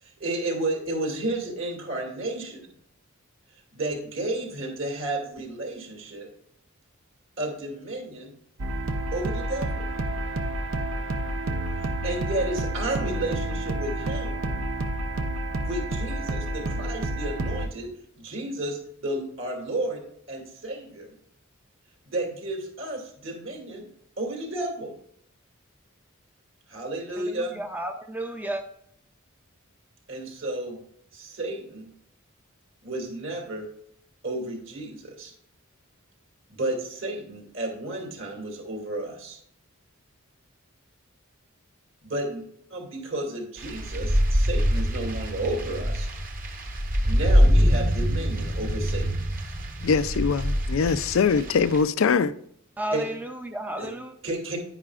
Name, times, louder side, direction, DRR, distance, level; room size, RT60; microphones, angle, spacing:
voice 1, 0.0-2.7 3.7-6.3 7.4-8.3 9.1-9.9 11.8-14.4 15.6-17.9 18.1-20.0 20.3-21.1 22.0-23.9 24.2-24.9 26.7-27.6 30.1-30.8 31.1-31.9 32.8-33.7 34.2-35.3 36.5-39.4 42.0-42.4 42.7-46.1 47.0-49.2 52.9-53.0 53.7-53.9 54.2-54.6, right 1 dB, 70° right, 2.5 m, -32 dB
sound 1, 8.6-17.7, right 1 dB, 90° right, 0.7 m, -29 dB
voice 2, 27.2-28.6 52.8-54.1, right 1 dB, 10° right, 0.4 m, -33 dB
sound 2, 43.6-51.8, equal, 40° right, 1.0 m, -24 dB
voice 3, 49.8-52.3, left 5 dB, 75° left, 0.4 m, -22 dB
9.8 x 9.7 x 2.4 m
head